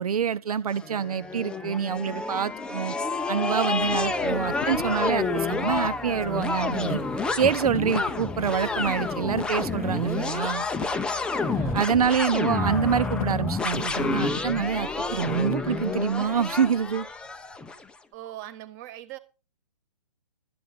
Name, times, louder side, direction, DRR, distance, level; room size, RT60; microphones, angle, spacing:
voice 1, 0.0-2.9 3.3-7.0 7.4-10.7 11.7-17.1, right 7 dB, 65° right, 1.1 m, -26 dB
sound 1, 0.8-17.8, left 3 dB, 5° left, 0.7 m, -29 dB
sound 2, 4.0-15.6, left 8 dB, 60° left, 0.7 m, -41 dB
voice 2, 11.5-11.9 18.1-19.2, right 13 dB, 30° right, 1.5 m, -41 dB
13.0 x 8.9 x 5.4 m
hypercardioid pair, 145°, 20 cm